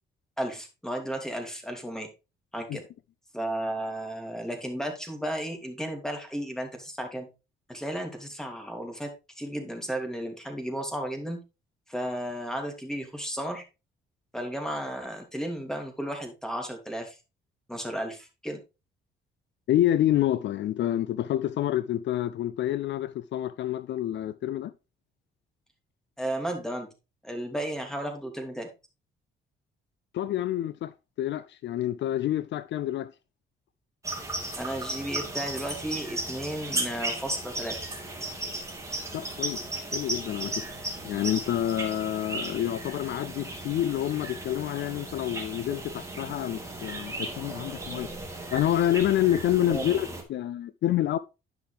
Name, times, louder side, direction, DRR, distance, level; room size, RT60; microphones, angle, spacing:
voice 1, 0.4-2.1 2.5-2.8 3.3-7.3 7.7-11.4 11.9-13.6 14.3-17.2 17.7-18.6 26.2-26.9 27.2-28.7 34.6-37.8 49.7-49.9, right 1 dB, 5° left, 2.7 m, -34 dB
voice 2, 19.7-24.7 30.1-30.9 31.2-33.1 39.1-39.6 39.9-40.6 41.0-48.1 48.5-51.2, left 12 dB, 65° left, 0.5 m, -28 dB
sound 1, 34.0-50.2, right 2 dB, 15° right, 2.5 m, -36 dB
10.5 x 5.9 x 3.4 m
cardioid pair, 90°, 20 cm